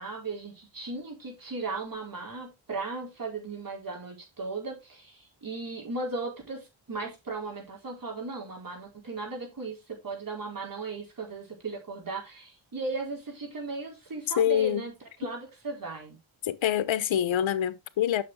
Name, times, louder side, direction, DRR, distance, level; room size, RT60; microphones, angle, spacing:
voice 1, 0.0-14.9 15.2-16.2, right 3 dB, 45° right, 4.7 m, -36 dB
voice 2, 14.4-14.8 16.4-18.2, left 11 dB, 70° left, 1.0 m, -26 dB
8.5 x 6.5 x 3.7 m
cardioid pair, 95°, 47 cm